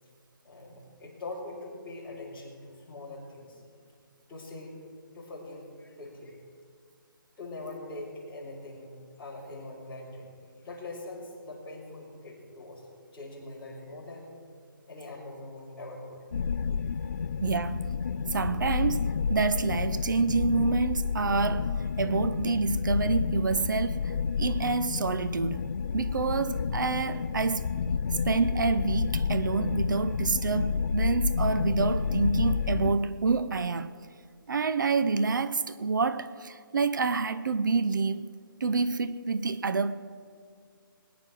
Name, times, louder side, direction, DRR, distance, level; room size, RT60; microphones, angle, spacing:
voice 1, 0.4-3.6 4.3-4.8 5.1-6.4 7.4-10.3 10.6-12.8 13.1-14.3 14.9-16.3, left 2 dB, 10° left, 3.6 m, -42 dB
sound 1, 16.3-32.9, left 6 dB, 45° left, 0.5 m, -30 dB
voice 2, 17.4-17.9 18.3-24.1 24.4-25.6 25.9-27.7 28.2-33.9 34.5-38.3 38.6-39.9, right 4 dB, 60° right, 0.6 m, -28 dB
20.5 x 9.5 x 6.1 m
hypercardioid pair, 170°, 12 cm